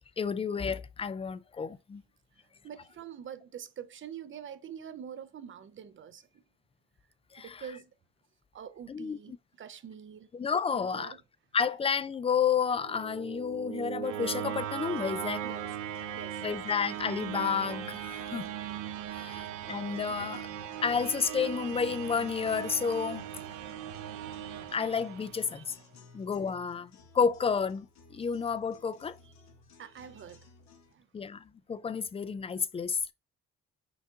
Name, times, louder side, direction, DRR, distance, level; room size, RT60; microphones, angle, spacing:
voice 1, 0.2-2.0 7.3-7.6 8.9-9.2 10.3-11.1 11.5-15.4 16.4-18.5 19.1-20.5 20.8-23.2 24.7-25.7 26.1-29.2 31.1-33.0, left 6 dB, 20° left, 0.3 m, -31 dB
voice 2, 2.6-6.2 7.4-7.9 8.5-10.3 10.7-11.2 15.4-15.9 16.2-16.6 20.1-20.3 25.5-25.6 28.2-28.3 29.2-29.3 29.8-30.5 30.9-31.1, right 8 dB, 40° right, 0.5 m, -45 dB
sound 1, 12.7-25.7, right 10 dB, 85° right, 0.6 m, -39 dB
sound 2, 14.9-30.9, left 3 dB, 65° left, 1.1 m, -58 dB
5.9 x 2.4 x 2.8 m
cardioid pair, 90°, 30 cm